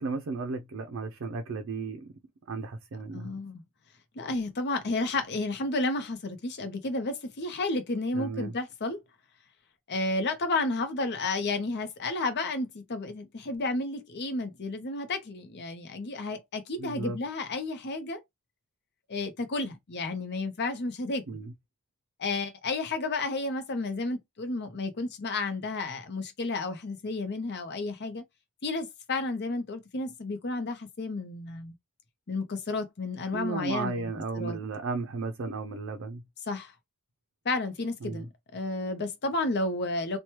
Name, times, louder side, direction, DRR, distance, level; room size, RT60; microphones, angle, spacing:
voice 1, 0.0-2.1 2.5-3.3 8.1-8.5 16.8-17.2 21.3-21.5 33.3-36.2 38.0-38.3, right 4 dB, 65° right, 0.4 m, -34 dB
voice 2, 3.1-3.6 4.2-9.0 9.9-18.2 19.1-21.4 22.2-28.2 28.6-31.7 32.3-34.6 36.5-36.7 37.4-38.3 38.5-40.2, left 2 dB, 50° left, 0.7 m, -32 dB
3.0 x 2.2 x 2.9 m
head